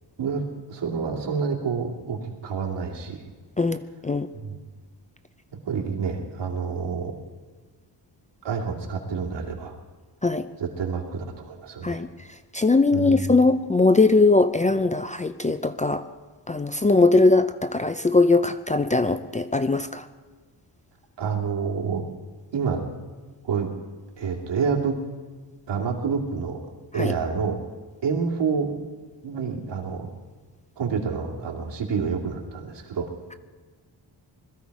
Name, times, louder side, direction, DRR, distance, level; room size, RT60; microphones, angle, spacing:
voice 1, 0.7-3.2 4.4-4.6 5.7-7.2 8.4-9.7 10.6-12.0 12.9-13.3 21.2-22.0 22.5-22.8 23.4-23.7 24.2-24.9 25.7-26.6 26.9-27.6 28.0-28.7 29.2-30.1 30.8-33.1, right 5 dB, 75° right, -1 dB, 2.6 m, -28 dB
voice 2, 3.6-4.3 10.2-10.5 11.8-12.1 12.5-16.0 16.5-20.0 26.9-27.1, left 3 dB, 20° left, 10 dB, 0.4 m, -20 dB
21.5 x 14.0 x 4.8 m, 1.4 s
wide cardioid pair, 120°, 43 cm